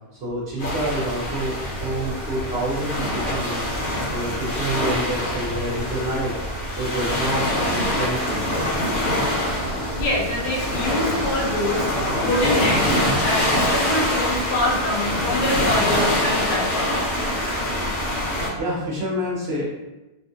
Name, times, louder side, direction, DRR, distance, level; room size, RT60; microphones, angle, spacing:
voice 1, 0.2-3.6 4.1-6.4 6.8-8.4 18.6-19.6, right 1 dB, 45° right, -6 dB, 1.0 m, -27 dB
sound 1, 0.6-18.5, left 1 dB, 50° left, 1.1 m, -24 dB
voice 2, 6.7-7.3 9.9-11.9 12.2-12.8 13.2-17.1, left 1 dB, 85° left, -4 dB, 1.4 m, -25 dB
3.5 x 2.4 x 2.7 m, 1.0 s
omnidirectional pair, 1.8 m